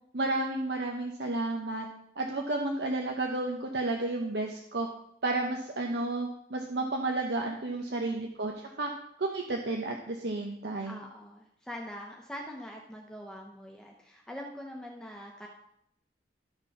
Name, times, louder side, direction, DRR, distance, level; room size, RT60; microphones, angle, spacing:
voice 1, 0.1-1.9 2.2-4.9 5.2-8.9 9.2-11.0, right 2 dB, 75° right, 2 dB, 0.9 m, -32 dB
voice 2, 7.8-8.2 10.8-15.5, equal, 5° left, -1 dB, 0.8 m, -43 dB
12.5 x 4.5 x 5.8 m, 0.77 s
head